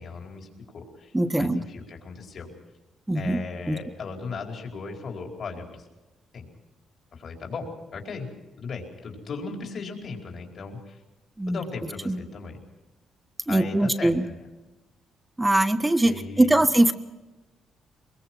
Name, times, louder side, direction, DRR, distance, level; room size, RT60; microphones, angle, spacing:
voice 1, 0.0-2.5 3.1-5.8 6.3-6.5 7.1-8.3 8.6-11.0 11.5-12.6 13.5-14.3 16.0-16.6, left 4 dB, 55° left, 1 dB, 4.6 m, -37 dB
voice 2, 1.1-1.6 3.1-3.8 11.4-11.6 12.1-12.2 13.5-14.2 15.4-16.9, right 1 dB, 10° right, 9 dB, 1.4 m, -22 dB
23.0 x 22.0 x 6.2 m, 1.1 s
cardioid pair, 90°, 0 cm